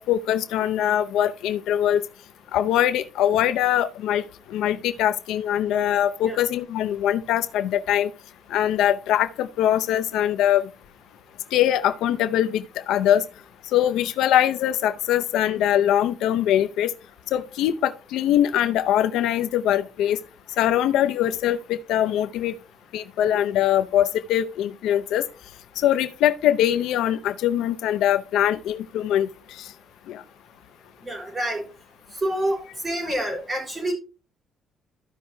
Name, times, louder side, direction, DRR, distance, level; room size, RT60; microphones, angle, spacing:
voice 1, 0.0-2.0 2.5-4.2 4.5-8.1 8.5-10.7 11.5-13.2 13.7-16.9 17.3-20.2 20.6-22.5 22.9-25.2 25.8-29.3 29.6-29.7 30.1-30.2, left 11 dB, 85° left, 0.6 m, -22 dB
voice 2, 31.0-31.6 32.2-33.9, right 1 dB, 25° right, 4.7 m, -27 dB
14.0 x 5.7 x 2.7 m
cardioid pair, 110°, 0 cm